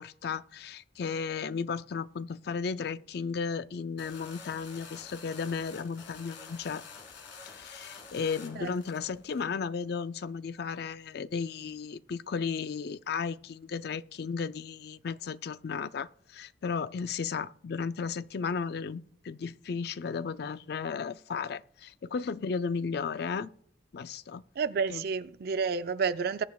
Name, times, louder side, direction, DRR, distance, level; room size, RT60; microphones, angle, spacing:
voice 1, 0.0-6.8 7.5-23.5 23.9-24.4 24.9-25.0, left 5 dB, 60° left, 0.4 m, -34 dB
sound 1, 4.0-9.4, left 5 dB, 85° left, 1.9 m, -48 dB
voice 2, 24.6-26.4, right 5 dB, 55° right, 0.4 m, -30 dB
21.0 x 8.4 x 2.3 m
head